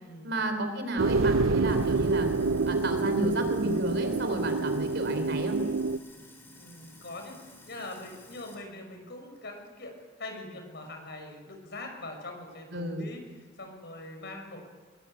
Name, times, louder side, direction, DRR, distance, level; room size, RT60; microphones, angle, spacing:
voice 1, 0.2-2.3 2.6-5.6 12.7-13.1, right 1 dB, 55° right, 7 dB, 3.7 m, -32 dB
sound 1, 1.0-6.0, right 3 dB, 80° right, 0.6 m, -27 dB
Sink (filling or washing), 1.6-8.6, left 2 dB, 10° left, 4.0 m, -53 dB
voice 2, 6.5-13.2 13.6-14.6, left 2 dB, 55° left, 4 dB, 6.0 m, -42 dB
23.0 x 21.5 x 8.9 m, 1.4 s
head